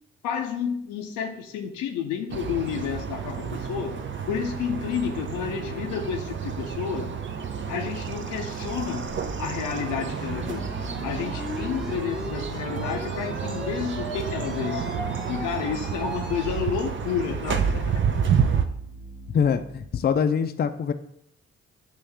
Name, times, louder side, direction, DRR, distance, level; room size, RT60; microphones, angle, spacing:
voice 1, 0.2-4.0 4.3-7.1 7.7-9.1 9.4-10.7 11.0-15.0 15.3-18.1 18.6-18.7, left 7 dB, 85° left, 5 dB, 0.6 m, -30 dB
sound 1, 2.3-18.6, right 7 dB, 40° right, 0.5 m, -30 dB
sound 2, 8.9-16.7, left 1 dB, ahead, 0.7 m, -39 dB
sound 3, 9.9-19.9, equal, 85° right, 1.2 m, -44 dB
voice 2, 19.3-20.9, left 7 dB, 35° left, 9 dB, 0.4 m, -24 dB
5.5 x 2.7 x 3.3 m, 0.73 s
supercardioid pair, 45°, 29 cm